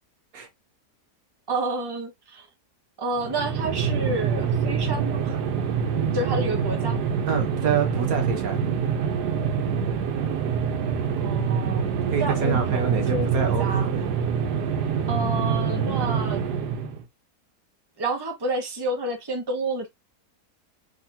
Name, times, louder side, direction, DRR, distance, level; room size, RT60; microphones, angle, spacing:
voice 1, 1.5-2.5 3.0-5.4 6.1-7.0 11.2-13.9 15.1-16.4 18.0-19.9, right 2 dB, 20° right, 0.9 m, -29 dB
sound 1, 3.2-17.0, right 6 dB, 85° right, 1.4 m, -26 dB
voice 2, 7.3-8.6 12.1-14.0, right 7 dB, 65° right, 1.5 m, -26 dB
3.8 x 3.5 x 2.7 m
omnidirectional pair, 1.7 m